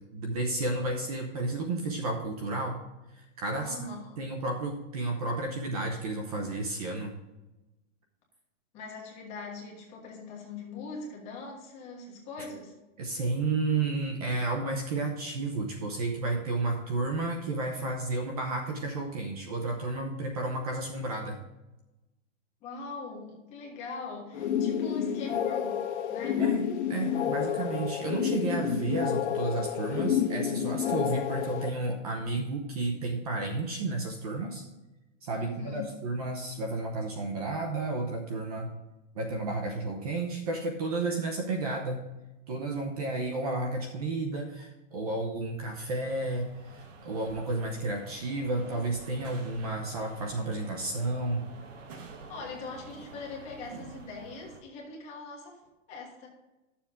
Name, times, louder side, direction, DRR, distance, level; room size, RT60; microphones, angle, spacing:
voice 1, 0.1-2.8 3.4-3.8 4.2-7.1 13.0-21.4 26.4-26.6 26.9-34.6 35.2-38.7 39.1-42.0 42.5-51.4, right 2 dB, 30° right, 2 dB, 0.8 m, -32 dB
voice 2, 3.6-4.2 8.7-12.7 22.6-25.8 26.1-26.5 35.3-35.9 52.3-55.6 55.9-56.3, left 3 dB, 15° left, -1 dB, 1.4 m, -41 dB
sound 1, 24.3-31.7, left 9 dB, 60° left, 1.6 m, -29 dB
sound 2, 46.0-54.6, right 4 dB, 75° right, 1.5 m, -48 dB
11.5 x 7.0 x 3.6 m, 1.0 s
supercardioid pair, 180°, 38 cm